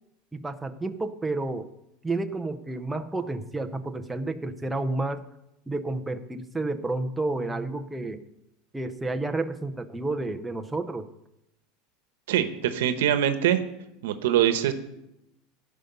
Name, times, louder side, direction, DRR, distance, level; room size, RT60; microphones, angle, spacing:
voice 1, 0.3-1.7 2.0-5.2 5.7-8.3 8.7-11.1, right 2 dB, 5° right, 5 dB, 0.6 m, -30 dB
voice 2, 12.3-13.6 14.0-14.7, right 10 dB, 90° right, 10 dB, 0.9 m, -23 dB
15.5 x 5.3 x 6.8 m, 0.87 s
supercardioid pair, 165°, 0 cm